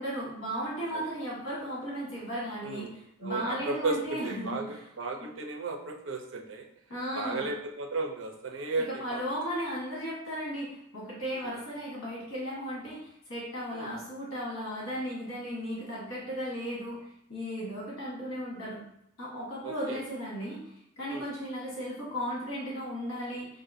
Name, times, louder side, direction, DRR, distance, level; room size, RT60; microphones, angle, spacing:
voice 1, 0.0-4.9 6.9-7.5 8.9-17.0 17.3-18.8 19.2-23.5, equal, 75° left, -6 dB, 1.3 m, -36 dB
voice 2, 3.2-4.0 4.2-6.7 7.1-9.2 11.4-11.6 13.7-13.9 19.6-20.0 21.1-21.3, right 3 dB, 65° right, 3 dB, 0.6 m, -34 dB
4.8 x 2.6 x 2.6 m, 0.75 s
head